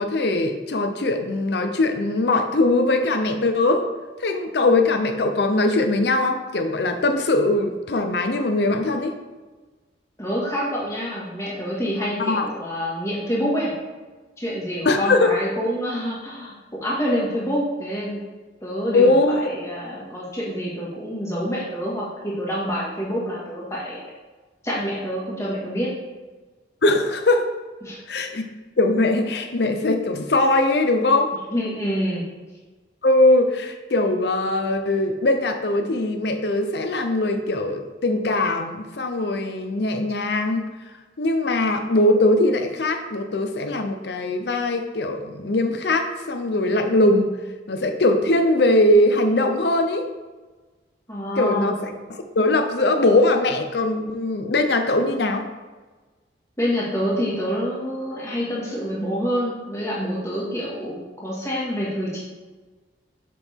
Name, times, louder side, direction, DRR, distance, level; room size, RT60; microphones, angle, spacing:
voice 1, 0.0-3.9 4.2-9.2 12.2-12.5 14.8-15.4 18.9-19.5 26.8-27.5 28.1-28.4 28.8-31.3 33.0-40.7 41.2-47.3 47.7-50.1 51.4-55.5, left 2 dB, 60° left, 6 dB, 0.6 m, -21 dB
voice 2, 10.2-13.7 14.4-18.2 18.6-24.0 24.6-25.9 27.8-28.0 31.5-32.2 51.1-51.7 56.6-62.2, equal, 15° left, -6 dB, 1.8 m, -27 dB
7.1 x 6.0 x 3.6 m, 1.3 s
head